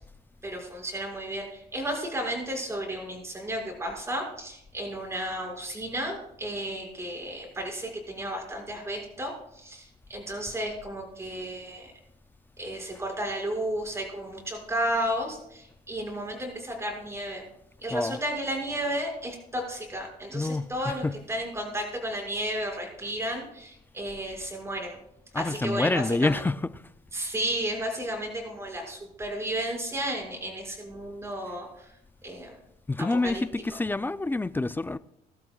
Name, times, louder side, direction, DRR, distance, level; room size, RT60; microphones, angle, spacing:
voice 1, 0.4-11.9 12.6-17.4 17.8-25.0 25.4-26.3 27.1-31.9 32.2-32.6 33.2-33.4, right 1 dB, 15° right, 5.7 m, -33 dB
voice 2, 17.9-18.2 20.3-21.2 25.3-26.7 32.9-35.0, left 2 dB, 10° left, 0.4 m, -27 dB
23.5 x 12.5 x 2.4 m
cardioid pair, 110°, 17 cm